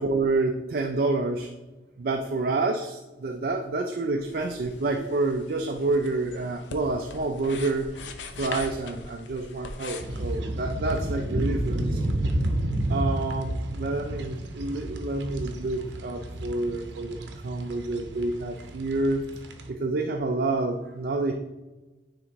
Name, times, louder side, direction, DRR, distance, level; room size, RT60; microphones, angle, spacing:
voice 1, 0.0-1.5 2.0-7.9 8.4-12.0 12.9-19.2 19.7-21.3, right 3 dB, 50° right, 4 dB, 0.4 m, -28 dB
sound 1, 4.2-10.4, left 4 dB, 70° left, 0.6 m, -42 dB
sound 2, 10.0-19.7, right 1 dB, 70° right, 0.8 m, -31 dB
9.6 x 3.7 x 3.0 m, 1.1 s
head